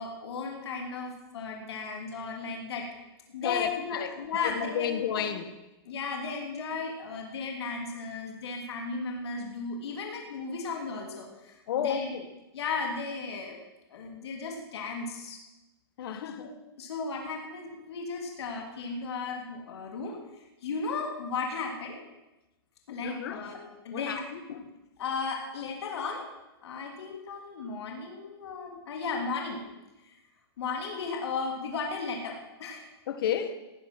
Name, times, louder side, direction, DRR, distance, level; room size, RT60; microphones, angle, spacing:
voice 1, 0.0-2.9 3.3-5.3 5.8-12.1 12.5-13.6 13.9-15.4 16.4-22.0 22.9-24.2 25.0-26.3 26.6-29.6 30.0-30.2 30.6-32.9, left 4 dB, 75° left, 1 dB, 3.1 m, -35 dB
voice 2, 3.4-4.1 4.4-5.5 11.7-12.3 16.0-16.5 23.0-23.4 23.9-24.6 33.1-33.6, left 9 dB, 60° left, 10 dB, 1.5 m, -32 dB
17.5 x 9.9 x 6.1 m, 1.0 s
supercardioid pair, 165°, 14 cm